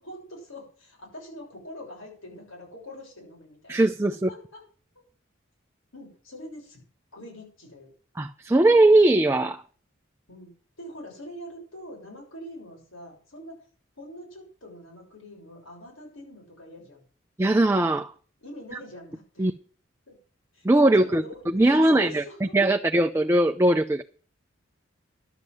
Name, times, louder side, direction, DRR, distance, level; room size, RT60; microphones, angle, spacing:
voice 1, 0.0-3.8 4.1-4.6 5.9-6.8 7.1-7.9 10.3-13.6 14.0-17.0 18.4-19.5 20.1-20.2 20.5-22.5, left 1 dB, 85° left, 6.8 m, -44 dB
voice 2, 3.7-4.3 8.2-9.6 17.4-18.1 19.4-19.5 20.6-22.2 22.5-24.0, right 1 dB, 15° right, 0.5 m, -20 dB
12.0 x 7.4 x 7.8 m
head